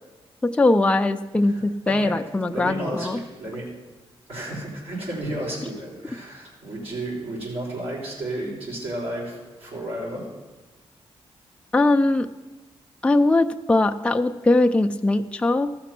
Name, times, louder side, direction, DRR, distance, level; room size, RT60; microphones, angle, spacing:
voice 1, 0.4-3.2 11.7-12.3 13.0-15.7, left 2 dB, 10° left, 6 dB, 0.4 m, -20 dB
voice 2, 1.4-2.2 2.5-3.7 4.3-10.3, right 1 dB, 70° right, -6 dB, 4.3 m, -32 dB
14.0 x 5.9 x 5.9 m, 1.2 s
cardioid pair, 85°, 11 cm